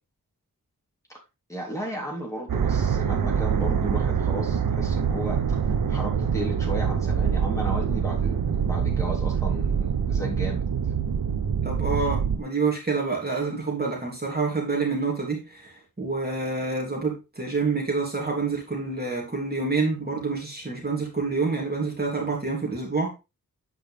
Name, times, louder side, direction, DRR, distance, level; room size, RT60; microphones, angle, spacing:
voice 1, 1.5-5.6 5.9-10.6, equal, 10° left, -2 dB, 3.3 m, -34 dB
sound 1, 2.5-12.4, right 7 dB, 70° right, 0.9 m, -25 dB
voice 2, 11.6-23.1, right 4 dB, 25° right, -1 dB, 3.0 m, -27 dB
8.9 x 5.1 x 3.4 m, 0.27 s
wide cardioid pair, 70°, 35 cm